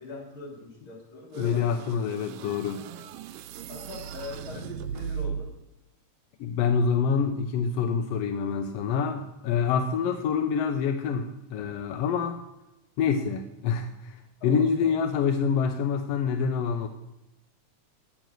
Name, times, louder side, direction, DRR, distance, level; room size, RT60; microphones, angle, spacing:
voice 1, 0.0-2.1 2.9-3.1 3.7-5.5 14.4-14.9, left 3 dB, 45° left, -2 dB, 3.7 m, -42 dB
sound 1, 1.3-5.7, right 7 dB, 90° right, 1.4 m, -37 dB
voice 2, 1.4-2.8 6.4-12.4 13.0-14.1 14.4-16.9, left 6 dB, 75° left, 6 dB, 1.5 m, -26 dB
7.9 x 7.2 x 7.5 m, 0.93 s
omnidirectional pair, 3.3 m